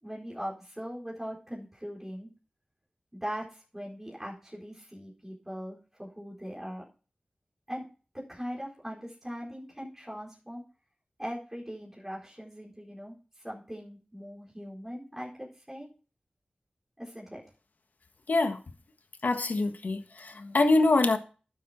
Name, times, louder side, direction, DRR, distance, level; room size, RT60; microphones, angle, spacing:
voice 1, 0.0-2.3 3.2-6.8 7.7-7.8 8.1-10.6 11.2-15.9 17.0-17.4, equal, 15° right, -4 dB, 4.4 m, -40 dB
voice 2, 18.3-18.6 19.2-21.2, left 2 dB, 75° left, 6 dB, 1.5 m, -24 dB
12.0 x 7.3 x 4.3 m, 0.36 s
wide cardioid pair, 60°, 3 cm